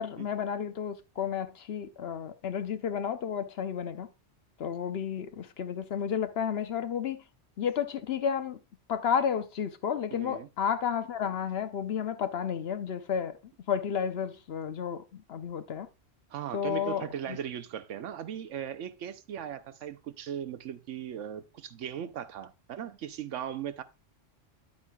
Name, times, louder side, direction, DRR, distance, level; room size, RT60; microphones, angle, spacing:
voice 1, 0.0-4.1 4.6-7.2 7.6-8.6 8.9-13.4 13.7-15.9 16.5-17.4, left 7 dB, 60° left, 0.9 m, -32 dB
voice 2, 10.1-10.5 16.3-23.8, right 9 dB, 80° right, 1.1 m, -38 dB
10.0 x 8.3 x 2.3 m
omnidirectional pair, 1.2 m